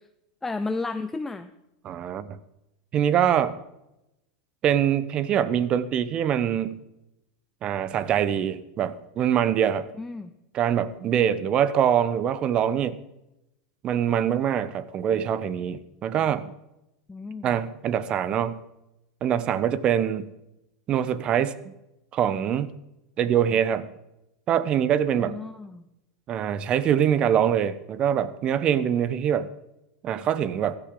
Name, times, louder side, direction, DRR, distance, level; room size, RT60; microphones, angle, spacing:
voice 1, 0.4-1.5 10.0-10.3 17.1-17.5 25.2-25.9, left 3 dB, 10° left, 10 dB, 0.6 m, -32 dB
voice 2, 1.8-2.4 2.9-3.6 4.6-6.8 7.6-9.9 10.5-13.0 13.8-16.5 17.4-18.6 19.2-20.3 20.9-21.7 22.1-22.7 23.2-23.9 24.5-25.4 26.3-29.5 30.0-30.8, right 9 dB, 40° right, 16 dB, 0.9 m, -24 dB
15.5 x 12.5 x 3.8 m, 0.89 s
hypercardioid pair, 95°, 3 cm